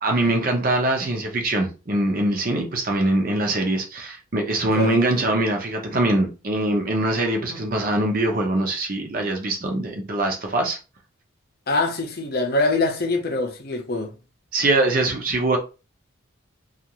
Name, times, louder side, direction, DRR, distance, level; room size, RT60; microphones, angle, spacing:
voice 1, 0.0-10.8 14.5-15.6, right 2 dB, 45° right, 0.7 m, -23 dB
voice 2, 11.7-14.1, left 2 dB, 45° left, 0.6 m, -24 dB
2.5 x 2.5 x 2.9 m
head